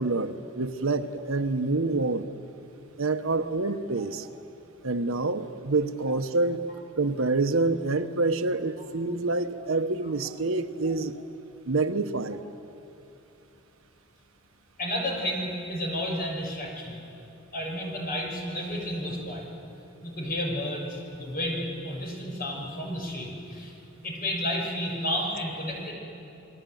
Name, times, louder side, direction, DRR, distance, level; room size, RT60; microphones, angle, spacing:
voice 1, 0.0-2.3 3.0-4.3 4.8-6.6 7.0-11.1 11.7-12.4, right 3 dB, 70° right, 9 dB, 1.0 m, -27 dB
voice 2, 14.8-16.9 17.5-19.4 20.0-23.7 24.0-25.9, left 1 dB, 45° left, 0 dB, 6.6 m, -31 dB
29.0 x 21.0 x 9.3 m, 2.8 s
head